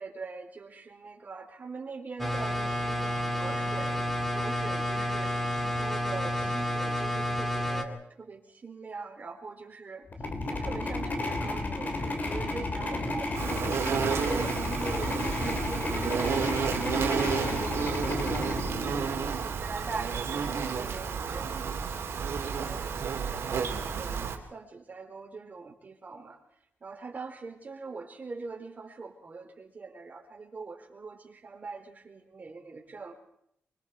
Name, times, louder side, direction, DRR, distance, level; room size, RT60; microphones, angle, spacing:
voice 1, 0.0-5.5 5.8-10.1 10.5-13.8 14.3-21.9 22.5-26.4 26.8-33.2, right 4 dB, 40° right, 3 dB, 4.1 m, -42 dB
sound 1, 2.2-7.8, equal, 5° left, 2.3 m, -30 dB
sound 2, 10.1-19.5, left 2 dB, 40° left, 3.2 m, -32 dB
Insect, 13.3-24.4, right 6 dB, 75° right, 2.8 m, -31 dB
25.0 x 24.5 x 4.8 m, 0.72 s
cardioid pair, 105°, 4 cm